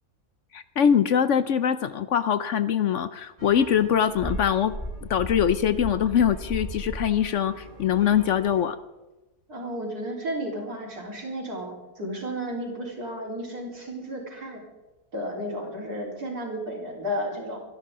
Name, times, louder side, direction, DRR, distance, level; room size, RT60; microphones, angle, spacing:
voice 1, 0.5-4.7 5.1-8.8, left 8 dB, 60° left, 13 dB, 0.9 m, -23 dB
sound 1, 3.4-8.6, right 1 dB, 25° right, 4.1 m, -37 dB
voice 2, 9.5-14.6 15.1-17.6, equal, 85° right, -2 dB, 4.5 m, -33 dB
24.5 x 11.5 x 3.8 m, 1.1 s
omnidirectional pair, 1.6 m